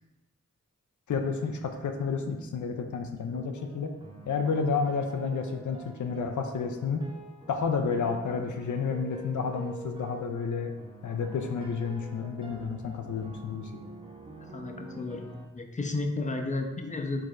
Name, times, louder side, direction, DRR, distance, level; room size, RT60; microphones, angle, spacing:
voice 1, 1.1-3.9 4.3-7.1 7.5-10.7 11.0-13.8, left 5 dB, 85° left, 4 dB, 0.4 m, -30 dB
sound 1, 3.3-15.5, right 2 dB, 15° right, 0.7 m, -47 dB
voice 2, 14.5-15.3 15.5-17.2, left 2 dB, 25° left, 4 dB, 0.5 m, -32 dB
4.7 x 3.8 x 2.4 m, 1.1 s
cardioid pair, 45°, 29 cm